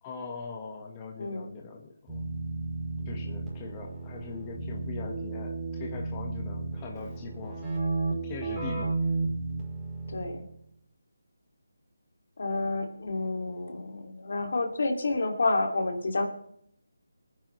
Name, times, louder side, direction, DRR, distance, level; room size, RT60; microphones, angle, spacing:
voice 1, 0.0-2.2 3.0-7.6 8.2-8.9, left 4 dB, 20° left, 1 dB, 1.5 m, -41 dB
Keyboard (musical), 2.1-10.5, right 3 dB, 5° right, 5.3 m, -33 dB
voice 2, 10.1-10.4 12.4-16.3, left 2 dB, 60° left, 4 dB, 2.6 m, -29 dB
23.0 x 9.8 x 3.3 m, 0.69 s
figure-of-eight pair, 160°, 0 cm